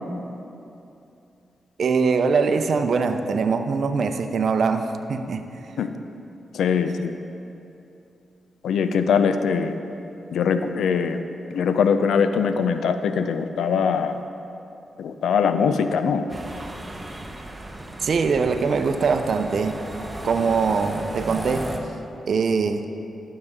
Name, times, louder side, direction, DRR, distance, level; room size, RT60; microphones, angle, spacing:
voice 1, 1.8-5.4 18.0-19.8 20.2-21.7 22.3-22.9, right 5 dB, 65° right, 8 dB, 0.5 m, -22 dB
voice 2, 6.5-7.1 8.6-9.7 10.3-11.2 11.5-14.2 15.0-16.3, left 6 dB, 85° left, 9 dB, 0.4 m, -22 dB
sound 1, 16.3-21.8, right 1 dB, 20° right, 0.9 m, -35 dB
12.0 x 6.5 x 3.6 m, 2.8 s
cardioid pair, 55°, 0 cm